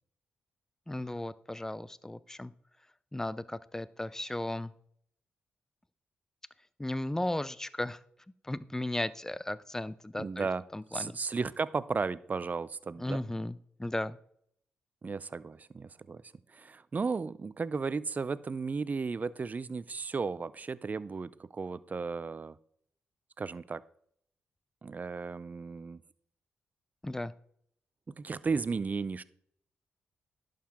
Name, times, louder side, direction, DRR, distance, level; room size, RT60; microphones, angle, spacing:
voice 1, 0.9-2.5 3.1-4.7 6.8-8.0 8.4-10.5 10.7-11.2 13.0-14.2 27.0-27.3, left 1 dB, 10° left, 17 dB, 0.5 m, -35 dB
voice 2, 10.2-10.6 10.9-13.2 15.0-16.2 16.5-22.6 23.4-23.8 24.8-26.0 28.2-29.2, right 4 dB, 40° right, 18 dB, 0.6 m, -34 dB
11.5 x 6.6 x 3.6 m, 0.66 s
supercardioid pair, 45°, 4 cm